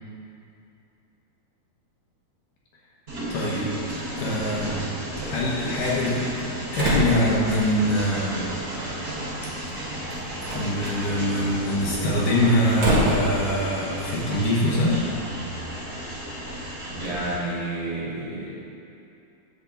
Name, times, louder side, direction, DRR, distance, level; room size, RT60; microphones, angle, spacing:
Train, 3.1-17.3, right 1 dB, 20° right, 2.1 m, -34 dB
voice 1, 3.3-3.7 4.2-4.9 5.2-8.5 10.5-15.0, left 1 dB, 70° left, -5 dB, 2.6 m, -24 dB
Slam, 5.7-15.2, equal, 55° right, 1.5 m, -31 dB
voice 2, 16.9-18.5, right 2 dB, 75° right, -7 dB, 3.9 m, -30 dB
10.0 x 4.3 x 7.1 m, 2.7 s
omnidirectional pair, 4.2 m